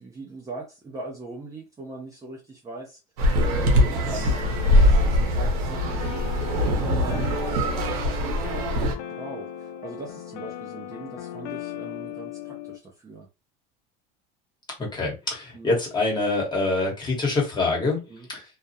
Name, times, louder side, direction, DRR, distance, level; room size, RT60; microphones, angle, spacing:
voice 1, 0.0-3.0 3.4-13.3 15.5-15.7 18.1-18.3, right 3 dB, 15° right, 0.6 m, -40 dB
sound 1, 3.2-8.9, left 1 dB, 80° right, 0.7 m, -22 dB
sound 2, 4.1-12.8, left 11 dB, 85° left, 0.4 m, -38 dB
voice 2, 14.8-18.0 18.3-18.4, left 3 dB, 20° left, 1.2 m, -25 dB
2.3 x 2.1 x 2.7 m
supercardioid pair, 120°, 20 cm